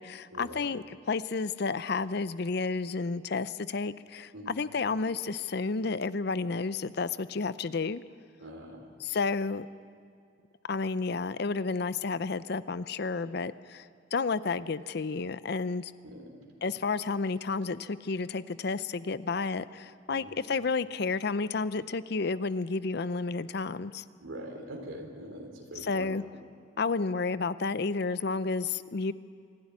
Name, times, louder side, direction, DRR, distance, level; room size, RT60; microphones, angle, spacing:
voice 1, 0.0-8.0 9.0-9.7 10.7-15.9 16.6-24.0 25.7-26.2 26.8-29.1, left 4 dB, 55° left, 15 dB, 0.6 m, -31 dB
voice 2, 4.3-4.6 8.4-8.9 16.0-16.3 20.1-20.4 24.2-26.1, right 1 dB, 90° right, 2 dB, 3.7 m, -43 dB
26.0 x 11.5 x 9.6 m, 2.3 s
head